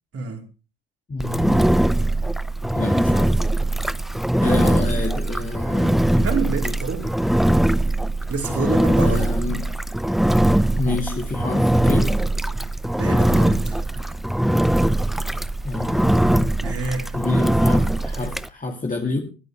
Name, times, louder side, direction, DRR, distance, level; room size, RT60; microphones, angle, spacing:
voice 1, 0.1-0.4 4.4-4.6 4.9-5.0 6.2-7.1 8.3-9.2 13.0-14.1 16.6-17.2, right 4 dB, 35° right, 4 dB, 4.1 m, -28 dB
voice 2, 1.1-1.8 2.7-3.4 4.4-6.3 6.6-6.8 9.0-9.8 10.8-12.2 15.6-16.6 17.1-19.2, left 3 dB, 20° left, 1 dB, 2.4 m, -29 dB
Engine, 1.2-18.5, right 1 dB, ahead, 0.6 m, -21 dB
22.0 x 10.5 x 3.4 m, 0.33 s
hypercardioid pair, 65°, 40 cm